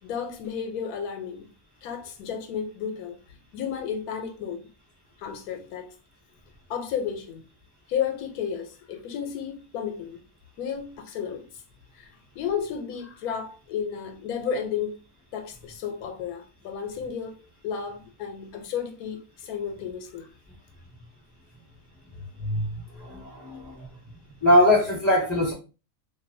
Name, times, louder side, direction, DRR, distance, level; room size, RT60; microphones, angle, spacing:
voice 1, 0.0-1.5 1.8-3.2 3.5-4.6 5.2-5.9 6.7-7.4 7.9-10.2 10.6-11.5 11.9-12.1 12.3-15.0 15.3-20.3, left 7 dB, 85° left, 1.1 m, -32 dB
voice 2, 22.4-23.9 24.4-25.5, left 1 dB, 20° right, 1.0 m, -22 dB
2.6 x 2.3 x 2.5 m
omnidirectional pair, 1.5 m